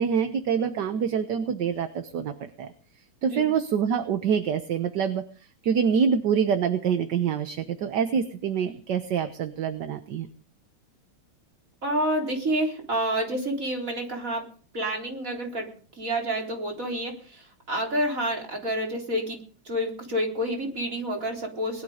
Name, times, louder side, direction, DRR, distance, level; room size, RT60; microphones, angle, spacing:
voice 1, 0.0-2.7 3.2-10.3, right 7 dB, 60° right, 9 dB, 1.6 m, -26 dB
voice 2, 11.8-14.5 14.7-19.4 19.6-21.8, right 1 dB, 40° right, 0 dB, 4.2 m, -29 dB
20.5 x 12.0 x 5.1 m, 0.42 s
omnidirectional pair, 2.2 m